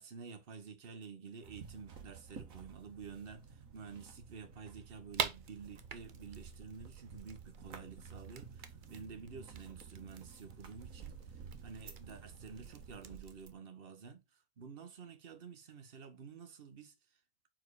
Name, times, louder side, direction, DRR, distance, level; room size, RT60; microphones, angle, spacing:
voice 1, 0.0-16.9, right 5 dB, 40° right, 1.0 m, -50 dB
sound 1, 1.4-13.2, right 6 dB, 55° right, 1.5 m, -53 dB
sound 2, 5.1-13.5, right 7 dB, 80° right, 0.4 m, -46 dB
4.6 x 4.6 x 4.7 m
omnidirectional pair, 1.8 m